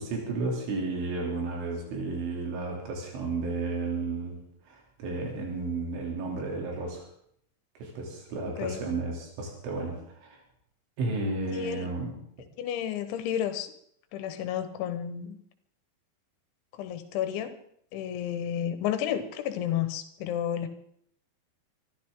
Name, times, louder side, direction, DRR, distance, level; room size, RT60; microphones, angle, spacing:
voice 1, 0.0-7.1 7.8-10.4 11.0-12.2, right 3 dB, 85° right, 0 dB, 5.6 m, -33 dB
voice 2, 11.5-11.9 12.6-13.7 14.1-15.4 16.8-17.5 17.9-20.7, left 10 dB, 80° left, 9 dB, 3.6 m, -31 dB
25.0 x 13.5 x 3.8 m, 0.67 s
omnidirectional pair, 5.3 m